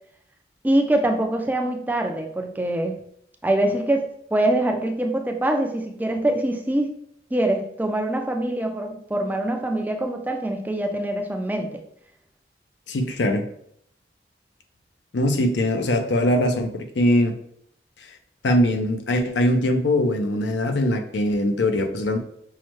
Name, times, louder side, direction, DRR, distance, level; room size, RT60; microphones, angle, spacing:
voice 1, 0.6-3.0 3.4-6.9 7.3-11.8, right 1 dB, 10° right, 4 dB, 0.3 m, -24 dB
voice 2, 12.9-13.5 15.1-17.3 18.1-18.2 18.4-22.2, left 1 dB, 85° left, 6 dB, 0.5 m, -21 dB
5.5 x 2.1 x 3.0 m, 0.69 s
head